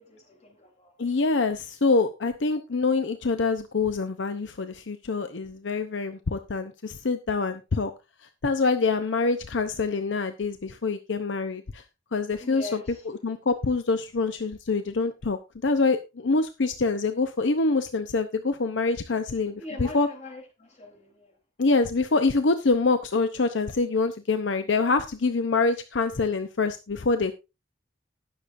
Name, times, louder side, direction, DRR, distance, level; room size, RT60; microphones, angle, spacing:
voice 1, 0.0-0.9 12.4-13.1 19.6-21.4, left 2 dB, 35° left, 3.5 m, -42 dB
voice 2, 1.0-7.9 8.2-11.8 12.1-12.8 13.1-20.1 21.6-27.3, left 3 dB, 70° left, 0.7 m, -25 dB
19.5 x 6.7 x 2.6 m
head